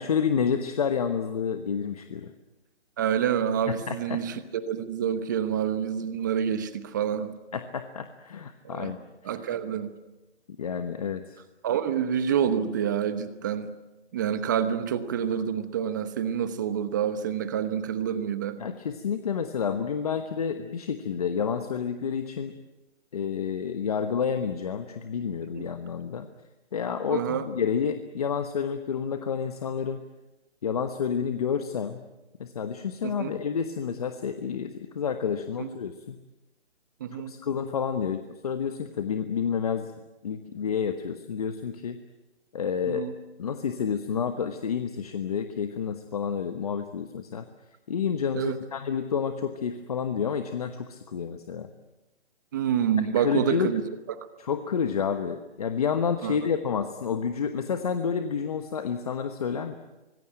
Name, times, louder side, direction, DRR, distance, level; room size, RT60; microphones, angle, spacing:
voice 1, 0.0-2.3 3.7-4.2 7.5-9.4 10.6-11.4 18.6-22.5 23.1-26.3 26.7-30.0 30.6-32.0 32.4-36.2 37.3-39.9 40.2-42.0 42.5-43.0 43.4-47.5 47.9-51.7 53.1-53.7 54.4-59.7, left 7 dB, 35° left, 8 dB, 1.2 m, -29 dB
voice 2, 3.0-7.3 8.6-8.9 9.2-9.9 11.6-13.7 14.1-18.6 25.5-25.7 27.1-27.5 33.0-33.3 35.6-35.7 37.0-37.3 42.9-43.1 48.3-48.6 52.5-53.8 54.1-54.3 56.2-56.4, right 8 dB, 15° right, 12 dB, 1.0 m, -27 dB
25.5 x 20.5 x 9.0 m, 1.1 s
hypercardioid pair, 165°, 35 cm